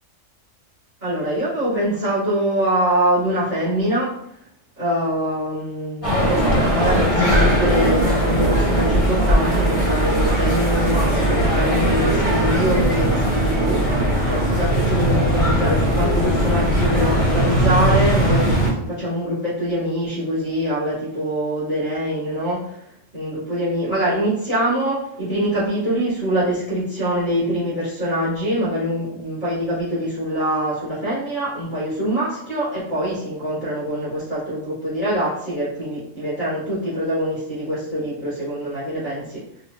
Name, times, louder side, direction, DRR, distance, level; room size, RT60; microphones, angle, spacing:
voice 1, 1.0-4.1 4.8-13.8 14.2-22.8 23.1-39.2, equal, 50° right, -12 dB, 1.9 m, -24 dB
sound 1, 6.0-18.7, right 1 dB, 30° left, 0.9 m, -19 dB
3.9 x 2.5 x 2.3 m, 0.72 s
omnidirectional pair, 1.3 m